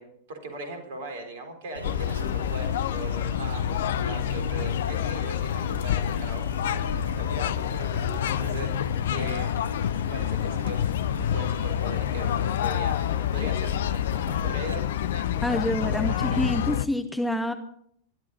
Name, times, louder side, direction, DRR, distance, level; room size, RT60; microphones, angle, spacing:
voice 1, 0.0-13.0 13.3-16.4, right 2 dB, 55° right, 5 dB, 4.2 m, -40 dB
sound 1, 1.7-14.7, right 2 dB, 85° right, 1.1 m, -38 dB
sound 2, 1.8-16.9, left 11 dB, 60° left, 0.6 m, -28 dB
voice 2, 15.4-17.5, left 1 dB, 5° left, 7 dB, 1.2 m, -27 dB
21.0 x 13.0 x 4.2 m, 0.66 s
figure-of-eight pair, 90°, 0 cm